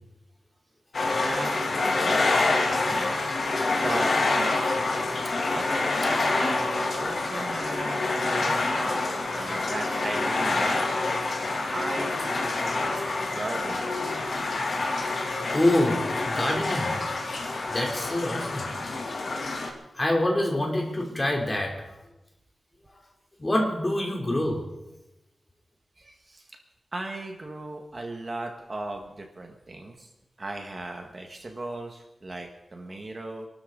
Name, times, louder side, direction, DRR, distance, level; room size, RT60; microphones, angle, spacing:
sound 1, 0.9-19.7, left 3 dB, 60° left, 2.8 m, -27 dB
voice 1, 1.1-2.3 2.9-3.3 3.8-4.6 5.5-5.7 6.0-10.9 11.7-12.7 13.3-14.0 16.6-16.9 26.0-26.6 26.9-30.1 30.4-33.5, right 2 dB, 35° right, 3 dB, 1.6 m, -36 dB
voice 2, 15.5-16.9 17.7-18.7 19.9-21.9 23.4-24.7, left 1 dB, 20° left, 0 dB, 3.3 m, -26 dB
27.0 x 13.0 x 4.0 m, 0.94 s
wide cardioid pair, 150°, 0 cm